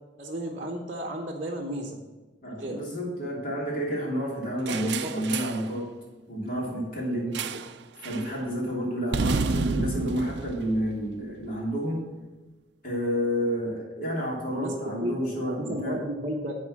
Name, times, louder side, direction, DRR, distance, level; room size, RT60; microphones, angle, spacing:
voice 1, 0.2-2.0 2.4-2.8 4.7-5.3 7.1-7.6 14.6-16.5, equal, 35° right, 0 dB, 0.9 m, -34 dB
voice 2, 2.4-5.9 6.3-7.4 8.0-12.0 12.8-16.0, equal, 45° left, -5 dB, 3.1 m, -30 dB
sound 1, 4.7-5.7 7.3-7.8 8.0-8.3 9.1-11.5, right 4 dB, 60° right, 0.4 m, -30 dB
11.0 x 4.4 x 7.4 m, 1.2 s
head